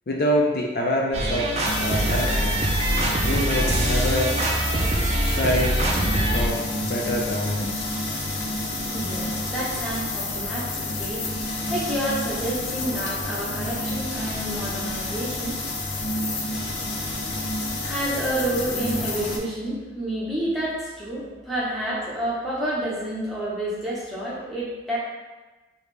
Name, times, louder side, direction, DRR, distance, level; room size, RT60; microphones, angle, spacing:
voice 1, 0.1-1.5 1.8-2.6 3.2-4.3 5.0-5.8 6.2-8.0, equal, 55° left, -1 dB, 0.4 m, -26 dB
sound 1, 1.1-6.5, right 1 dB, 35° right, 0.5 m, -23 dB
sound 2, 1.6-19.4, left 2 dB, 85° left, 0.7 m, -29 dB
voice 2, 8.9-15.8 16.6-16.7 17.6-25.0, right 1 dB, ahead, -8 dB, 1.0 m, -29 dB
4.8 x 2.6 x 3.3 m, 1.2 s
head